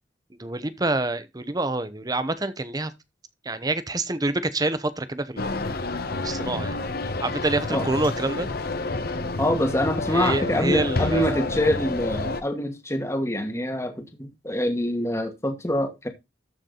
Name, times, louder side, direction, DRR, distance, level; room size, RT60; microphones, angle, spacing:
voice 1, 0.4-2.9 3.4-5.7 6.2-6.8 7.2-8.5 10.1-11.4, right 2 dB, 20° right, 0.9 m, -27 dB
sound 1, 5.4-12.4, left 2 dB, 55° left, 1.2 m, -29 dB
voice 2, 9.4-16.1, left 1 dB, 15° left, 1.4 m, -25 dB
13.5 x 4.7 x 3.9 m
head